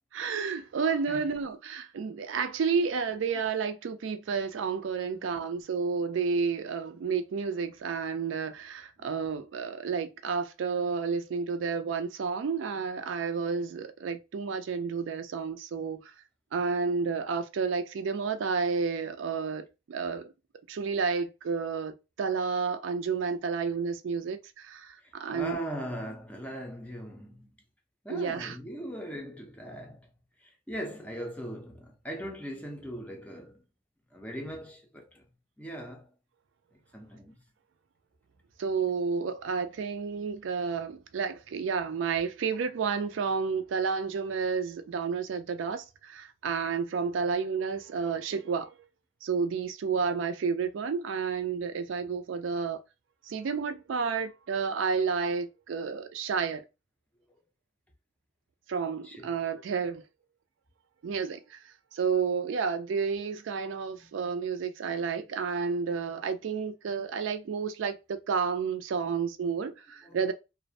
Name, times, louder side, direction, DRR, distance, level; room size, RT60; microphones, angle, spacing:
voice 1, 0.1-16.1 16.5-20.3 20.7-25.6 28.1-28.6 38.6-48.7 49.2-52.8 53.3-56.6 58.7-60.0 61.0-61.6 61.9-70.3, right 5 dB, 75° right, 0.4 m, -31 dB
voice 2, 5.1-5.4 25.0-27.6 28.0-30.1 30.4-33.6 34.1-35.3 35.6-36.1 36.9-37.4 59.0-59.7 64.0-64.3 69.0-69.3 70.0-70.3, equal, 5° left, 0.4 m, -40 dB
2.4 x 2.0 x 2.6 m
head